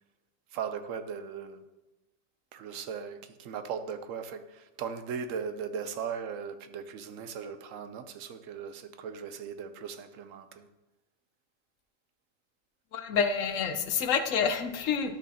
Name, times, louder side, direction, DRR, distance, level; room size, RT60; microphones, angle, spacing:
voice 1, 0.5-1.6 2.5-10.7, right 6 dB, 90° right, 1.0 m, -38 dB
voice 2, 12.9-15.2, left 6 dB, 80° left, 1.1 m, -28 dB
12.0 x 6.1 x 2.8 m
omnidirectional pair, 1.3 m